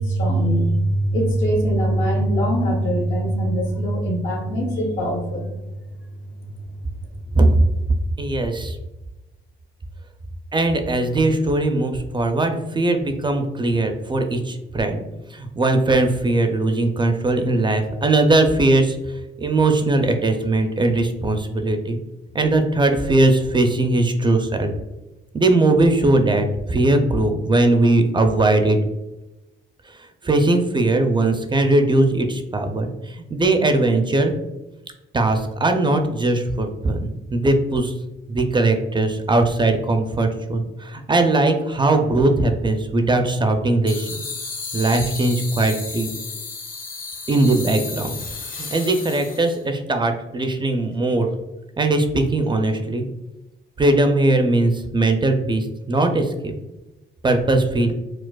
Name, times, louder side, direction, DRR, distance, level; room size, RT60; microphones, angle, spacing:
voice 1, 0.0-5.5, right 1 dB, 80° left, -1 dB, 1.1 m, -21 dB
voice 2, 8.2-8.8 10.5-15.0 15.3-19.0 19.4-22.0 22.3-24.7 25.3-28.8 29.9-34.3 35.1-37.9 38.3-44.1 44.7-46.1 47.3-48.1 48.6-51.3 51.8-53.1 53.8-56.5 57.2-57.9, right 2 dB, 25° right, 6 dB, 0.4 m, -19 dB
sound 1, 43.9-49.6, left 4 dB, 45° left, 0.7 m, -33 dB
4.7 x 2.0 x 2.2 m, 0.99 s
cardioid pair, 90°, 20 cm